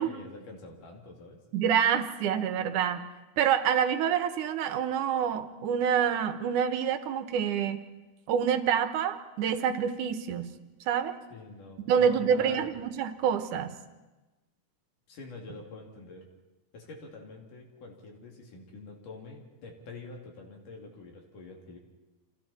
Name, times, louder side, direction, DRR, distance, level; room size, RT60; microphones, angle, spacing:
voice 1, 0.0-1.4 11.3-12.7 15.1-16.2 16.7-21.8, left 3 dB, 75° left, 1 dB, 4.3 m, -46 dB
voice 2, 1.5-3.1 3.4-7.8 8.3-10.5 10.9-11.2 11.9-13.8, right 8 dB, 75° right, 9 dB, 2.5 m, -27 dB
30.0 x 26.5 x 4.3 m, 1.1 s
omnidirectional pair, 3.7 m